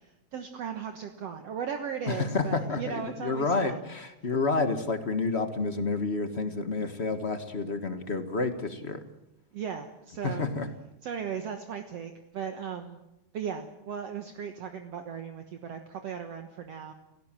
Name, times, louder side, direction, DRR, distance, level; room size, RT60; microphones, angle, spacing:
voice 1, 0.0-3.8 9.5-10.5 11.0-13.0 13.3-16.9, right 7 dB, 60° right, 5 dB, 2.2 m, -37 dB
voice 2, 2.1-9.0 10.2-10.7, left 3 dB, 35° left, 8 dB, 1.0 m, -29 dB
29.5 x 16.5 x 7.6 m, 0.93 s
omnidirectional pair, 3.5 m